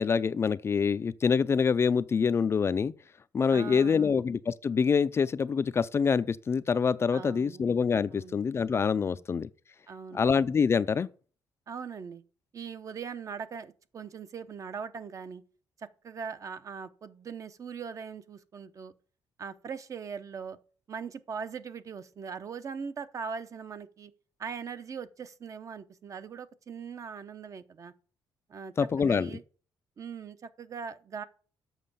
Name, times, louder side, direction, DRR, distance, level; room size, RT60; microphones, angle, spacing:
voice 1, 0.0-2.9 3.3-9.5 10.1-11.1 28.8-29.3, left 6 dB, 30° left, 0.4 m, -26 dB
voice 2, 3.5-4.2 7.1-7.6 8.1-8.4 9.0-9.2 9.9-10.2 11.7-12.2 12.5-15.4 15.8-18.9 19.4-20.6 20.9-24.1 24.4-27.9 28.5-29.4 30.0-31.2, right 6 dB, 40° right, 0.8 m, -40 dB
7.5 x 6.2 x 6.9 m
cardioid pair, 120°, 8 cm